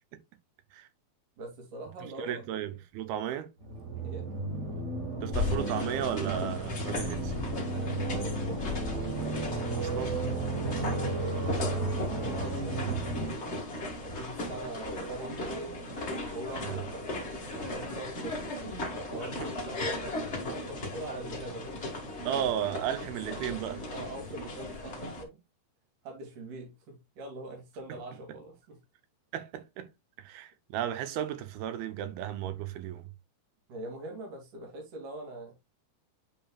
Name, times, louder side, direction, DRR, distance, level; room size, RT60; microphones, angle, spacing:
voice 1, 1.4-2.4 4.0-4.3 7.6-8.6 10.4-13.5 14.0-15.8 16.3-17.1 17.4-18.5 19.1-21.8 23.8-25.4 26.0-28.8 33.7-35.5, right 2 dB, 55° right, 3.8 m, -43 dB
voice 2, 2.2-3.5 5.2-7.3 9.8-10.2 12.7-12.9 16.6-16.8 19.4-19.5 22.3-23.8 29.3-29.9 30.2-33.1, right 10 dB, 80° right, 2.5 m, -34 dB
sound 1, 3.6-13.3, right 2 dB, 35° right, 1.8 m, -33 dB
sound 2, 5.3-25.2, left 2 dB, 65° left, 0.6 m, -37 dB
10.0 x 5.3 x 2.3 m
omnidirectional pair, 4.5 m